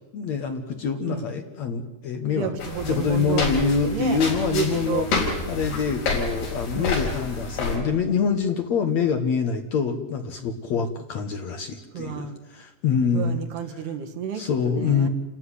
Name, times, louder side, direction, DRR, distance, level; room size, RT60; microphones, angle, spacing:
voice 1, 0.1-2.5 2.9-5.0 5.5-12.3 12.5-13.4 14.3-15.1, left 6 dB, 60° left, 6 dB, 2.1 m, -25 dB
voice 2, 2.3-4.2 4.5-5.1 6.7-6.9 10.7-10.9 11.9-12.4 13.1-15.1, right 8 dB, 85° right, 5 dB, 3.7 m, -31 dB
sound 1, 2.6-7.8, left 3 dB, 85° left, 6.5 m, -29 dB
28.5 x 13.5 x 9.9 m, 1.1 s
omnidirectional pair, 4.5 m